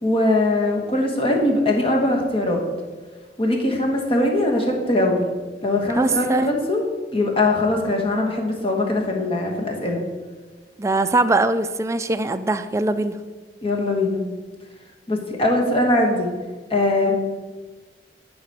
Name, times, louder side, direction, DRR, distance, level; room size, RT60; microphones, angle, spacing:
voice 1, 0.0-2.6 3.4-5.3 5.6-6.8 7.1-10.0 13.6-14.2 15.1-16.3 16.7-17.2, left 2 dB, 35° left, 1 dB, 1.3 m, -21 dB
voice 2, 6.0-6.5 10.8-13.2, right 2 dB, 15° right, 10 dB, 0.3 m, -21 dB
9.6 x 5.0 x 4.7 m, 1.3 s
head